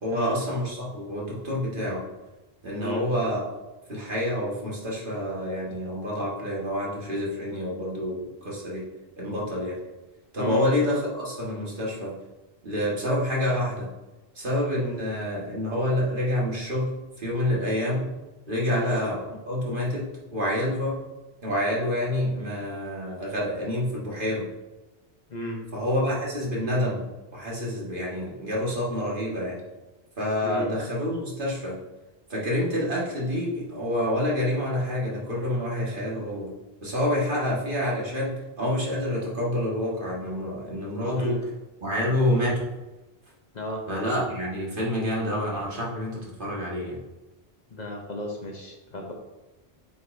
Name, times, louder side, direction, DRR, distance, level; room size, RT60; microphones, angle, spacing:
voice 1, 0.0-2.0 2.6-3.5 3.9-8.8 9.2-9.8 10.3-12.1 12.6-13.9 14.4-18.1 18.5-21.0 21.4-24.5 25.7-29.6 30.2-31.8 32.3-36.5 36.8-41.4 41.8-42.7 43.9-47.0, left 1 dB, 55° right, -5 dB, 1.9 m, -28 dB
voice 2, 47.7-49.1, equal, 45° left, 0 dB, 0.9 m, -33 dB
7.9 x 5.1 x 2.6 m, 1.1 s
omnidirectional pair, 1.1 m